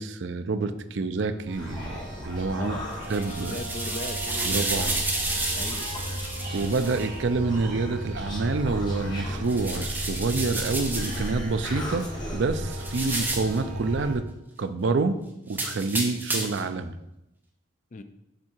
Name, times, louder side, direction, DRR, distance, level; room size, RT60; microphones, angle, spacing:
voice 1, 0.0-2.0 2.2-2.8 3.1-3.6 4.5-5.1 6.5-14.3 14.6-15.2 15.5-16.9, right 3 dB, 60° right, 10 dB, 0.4 m, -27 dB
Human voice, 1.2-13.5, left 1 dB, 20° left, 1.3 m, -41 dB
sound 1, 1.5-14.2, equal, 40° right, 1.8 m, -35 dB
sound 2, 2.9-7.1 9.4-11.3 12.7-13.6 15.5-16.7, right 2 dB, 10° right, 0.7 m, -31 dB
voice 2, 3.1-4.2 5.5-5.9 17.9-18.0, left 3 dB, 40° left, 9 dB, 0.4 m, -38 dB
7.6 x 3.6 x 4.4 m, 0.88 s
head